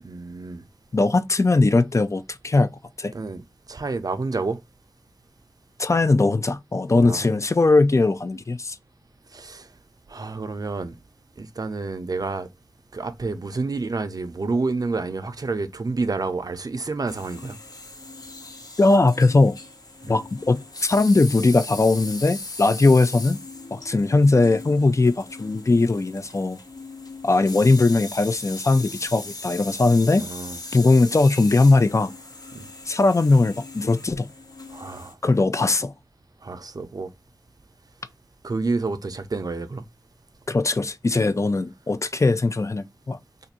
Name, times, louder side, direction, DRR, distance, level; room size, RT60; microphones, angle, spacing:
voice 1, 0.0-0.6 3.1-3.4 3.7-4.6 7.0-7.4 9.3-9.7 10.1-11.0 11.4-12.5 12.9-17.6 20.0-20.2 30.2-30.6 32.5-32.7 34.7-35.2 36.4-37.1 38.4-39.8, right 3 dB, 65° right, 0.5 m, -29 dB
voice 2, 0.9-2.7 3.0-3.1 5.8-8.8 18.8-19.6 20.1-23.4 23.7-26.6 27.2-30.3 30.7-32.1 32.9-34.3 35.2-35.9 40.5-43.2, left 3 dB, 45° left, 0.4 m, -19 dB
Factory sounds, 17.1-35.1, left 2 dB, 65° left, 0.8 m, -39 dB
2.6 x 2.5 x 4.2 m
wide cardioid pair, 40°, 7 cm